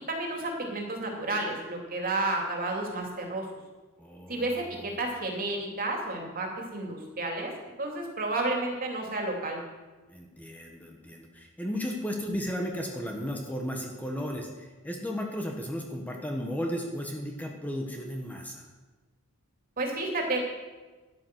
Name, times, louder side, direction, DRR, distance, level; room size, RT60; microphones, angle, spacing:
voice 1, 0.1-3.5 4.3-7.5 7.8-9.6 19.8-20.4, right 2 dB, 40° right, 1 dB, 2.8 m, -31 dB
voice 2, 4.0-4.5 10.1-18.6, equal, 5° left, 1 dB, 1.4 m, -34 dB
12.5 x 11.0 x 6.1 m, 1.2 s
head